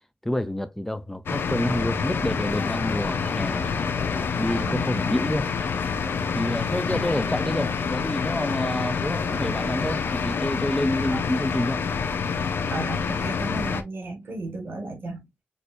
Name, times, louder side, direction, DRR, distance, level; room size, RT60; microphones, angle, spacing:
voice 1, 0.2-3.7 4.4-5.5 6.3-11.8, left 1 dB, 10° left, 0.5 m, -28 dB
sound 1, 1.3-13.8, left 5 dB, 75° left, 0.7 m, -27 dB
sound 2, 2.5-10.6, left 3 dB, 50° left, 1.0 m, -40 dB
voice 2, 4.6-5.0 6.9-7.4 11.1-11.3 12.7-15.3, right 2 dB, 70° right, 1.8 m, -34 dB
6.4 x 2.7 x 2.6 m
wide cardioid pair, 95°, 4 cm